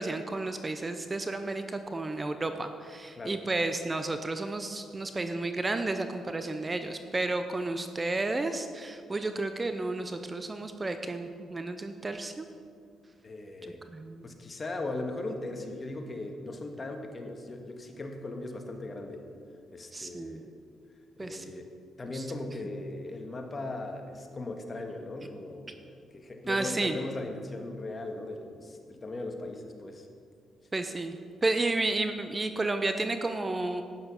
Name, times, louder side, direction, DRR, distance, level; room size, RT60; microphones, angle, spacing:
voice 1, 0.0-12.5 13.6-14.3 19.9-20.4 21.2-21.4 22.1-22.2 26.5-27.0 30.7-31.1 31.4-33.8, right 2 dB, 25° right, 8 dB, 0.7 m, -32 dB
voice 2, 13.2-13.8 14.2-19.3 19.7-20.5 21.2-21.7 22.0-25.7 26.1-30.1, left 2 dB, 30° left, 3 dB, 1.7 m, -38 dB
12.0 x 9.3 x 6.0 m, 2.3 s
cardioid pair, 90°, 0 cm